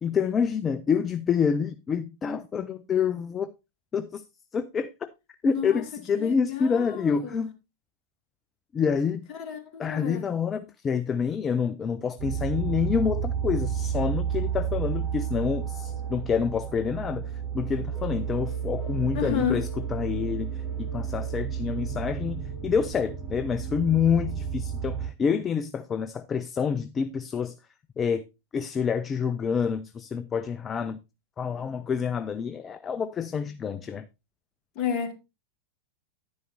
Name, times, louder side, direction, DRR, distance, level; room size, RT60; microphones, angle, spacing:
voice 1, 0.0-3.5 3.9-4.2 4.5-5.1 5.4-7.5 8.7-9.2 9.8-17.2 17.5-27.6 28.0-28.2 28.5-31.0 31.4-34.0, left 6 dB, 20° left, 0.5 m, -27 dB
voice 2, 5.4-5.8 6.2-7.4 9.3-10.3 19.1-19.6 34.8-35.1, left 8 dB, 35° left, 2.3 m, -31 dB
sound 1, 12.2-25.1, right 8 dB, 30° right, 6.5 m, -31 dB
11.0 x 9.5 x 2.7 m
figure-of-eight pair, 90°, 0 cm